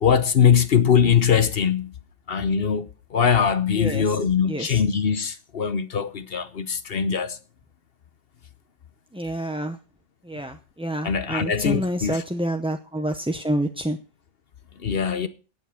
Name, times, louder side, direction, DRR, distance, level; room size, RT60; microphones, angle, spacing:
voice 1, 0.0-1.9 2.3-7.4 11.0-12.2 14.8-15.3, left 7 dB, 55° left, 1.0 m, -21 dB
voice 2, 4.5-4.8 9.1-9.8 10.3-14.0, right 1 dB, 5° right, 0.5 m, -28 dB
17.5 x 7.3 x 5.7 m
omnidirectional pair, 1.3 m